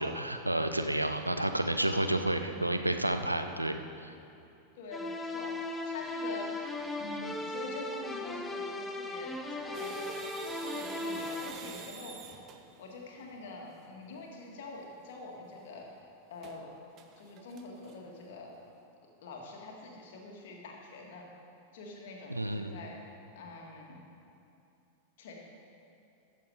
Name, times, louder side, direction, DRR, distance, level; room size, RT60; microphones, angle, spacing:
voice 1, 0.0-3.7 4.0-4.1 22.3-22.7, right 1 dB, 85° right, 7 dB, 0.6 m, -30 dB
voice 2, 4.8-10.2 10.5-12.1 12.8-16.0 16.3-18.5 19.2-21.3 21.7-23.0 23.4-24.0 25.2-25.3, left 3 dB, 55° left, 0 dB, 1.9 m, -45 dB
sound 1, 4.9-11.5, left 2 dB, 10° left, 0.7 m, -37 dB
sound 2, 9.7-12.8 16.4-16.6 17.0-17.9, right 6 dB, 35° right, 0.8 m, -45 dB
14.5 x 6.9 x 4.9 m, 2.7 s
figure-of-eight pair, 90°, 0 cm